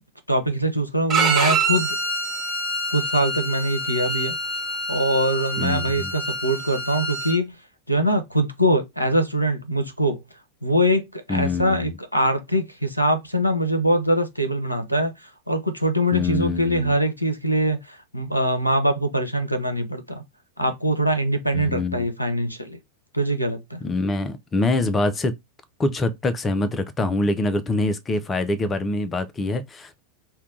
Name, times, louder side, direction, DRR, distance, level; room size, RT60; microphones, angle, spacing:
voice 1, 0.3-2.0 2.9-4.4 4.9-7.6 7.9-10.2 10.6-20.2 20.6-22.8 23.1-23.8, right 1 dB, 85° left, 0.6 m, -23 dB
Bowed string instrument, 1.1-7.4, right 2 dB, 25° right, 1.2 m, -26 dB
voice 2, 5.6-6.1 11.3-12.0 16.1-16.9 21.5-22.1 23.8-25.3 25.8-30.0, left 2 dB, 20° left, 0.5 m, -25 dB
2.7 x 2.3 x 3.7 m
figure-of-eight pair, 90°, 0 cm